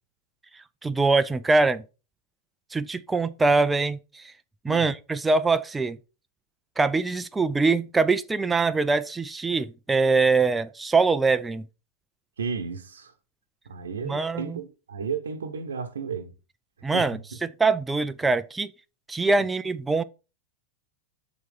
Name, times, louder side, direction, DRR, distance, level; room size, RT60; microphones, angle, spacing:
voice 1, 0.8-1.8 2.7-4.3 4.6-6.0 6.8-11.7 14.0-14.6 16.8-17.2 17.6-18.7 19.1-20.0, right 3 dB, 10° right, 0.5 m, -23 dB
voice 2, 12.4-13.1 13.7-16.3 16.9-17.4, right 5 dB, 70° right, 0.9 m, -33 dB
7.6 x 4.2 x 5.1 m
figure-of-eight pair, 90°, 0 cm